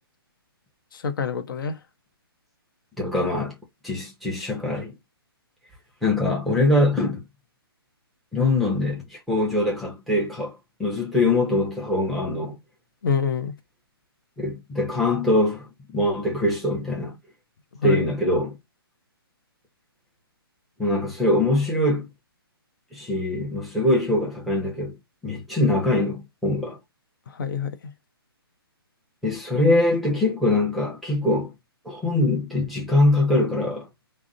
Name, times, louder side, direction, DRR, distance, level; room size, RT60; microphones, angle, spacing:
voice 1, 0.9-1.8 13.0-13.5 17.8-18.0 27.3-27.8, left 6 dB, 55° left, 0.6 m, -26 dB
voice 2, 3.0-3.5 3.8-4.9 6.0-7.2 8.3-12.6 14.4-17.2 17.8-18.6 20.8-22.1 22.9-25.0 25.2-26.8 29.2-31.5 31.8-33.9, left 2 dB, ahead, 0.7 m, -23 dB
2.4 x 2.1 x 3.8 m
hypercardioid pair, 140°, 13 cm